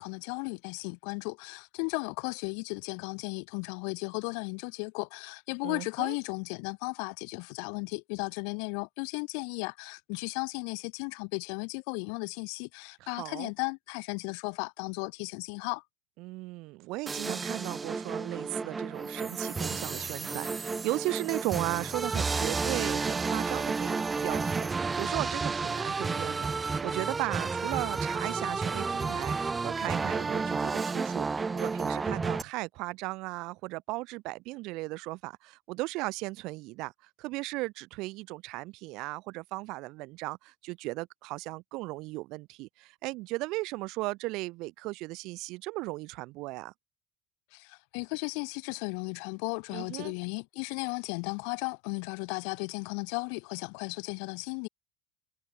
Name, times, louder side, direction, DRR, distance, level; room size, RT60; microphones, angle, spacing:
voice 1, 0.0-15.8 47.5-54.7, left 40 dB or more, 70° left, 1.6 m, -35 dB
voice 2, 5.6-6.2 13.0-13.5 16.2-46.7 49.7-50.1, right 22 dB, 60° right, 2.1 m, -36 dB
sound 1, 17.1-32.4, right 4 dB, 15° right, 0.8 m, -31 dB
cardioid pair, 140°, 0 cm